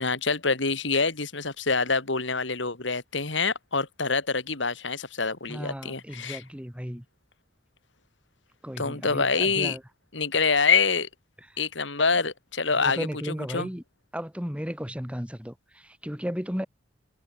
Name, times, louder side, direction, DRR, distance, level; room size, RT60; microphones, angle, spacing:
voice 1, 0.0-6.4 8.8-9.8 10.1-11.1 11.6-13.7, left 4 dB, 75° left, 3.2 m, -26 dB
voice 2, 5.5-7.0 8.6-9.8 11.5-11.6 12.7-13.8 14.1-16.7, equal, 5° right, 6.9 m, -34 dB
head